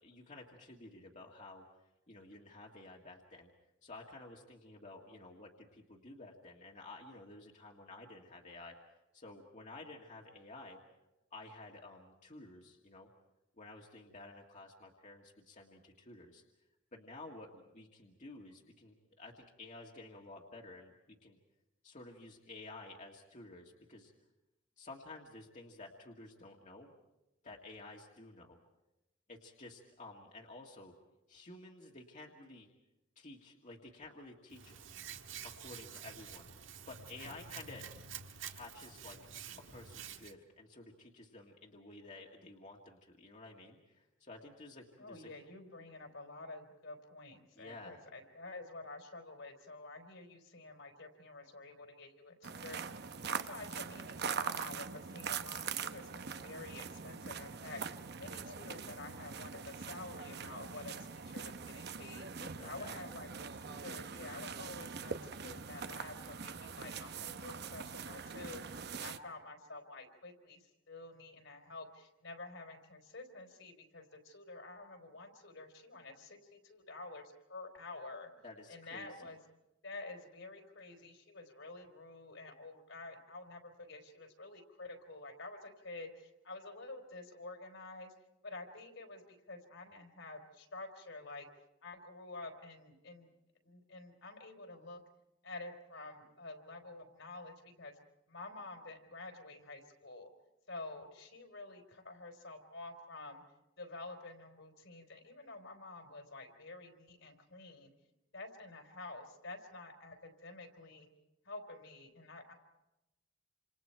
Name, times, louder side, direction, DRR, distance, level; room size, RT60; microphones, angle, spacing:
voice 1, 0.0-1.7 2.1-3.5 3.8-8.8 9.1-10.8 11.3-13.1 13.6-16.4 16.9-21.4 21.8-24.1 24.8-26.9 27.4-28.6 29.3-30.9 31.3-32.7 33.2-34.8 35.4-37.9 38.5-45.3 47.6-48.0 62.4-63.0 78.4-79.3, left 2 dB, 40° left, -1 dB, 1.9 m, -52 dB
Hands, 34.5-40.3, right 8 dB, 80° right, 1.6 m, -49 dB
voice 2, 45.0-53.0 53.3-78.3 78.7-79.4 79.8-88.1 88.4-91.5 91.8-93.3 93.6-95.0 95.4-98.0 98.3-100.3 100.7-103.4 103.8-107.9 108.3-111.1 111.4-112.5, left 2 dB, 70° left, 5 dB, 3.9 m, -49 dB
sound 1, 52.4-69.2, right 6 dB, 55° right, 0.9 m, -43 dB
28.0 x 27.5 x 4.6 m, 0.96 s
head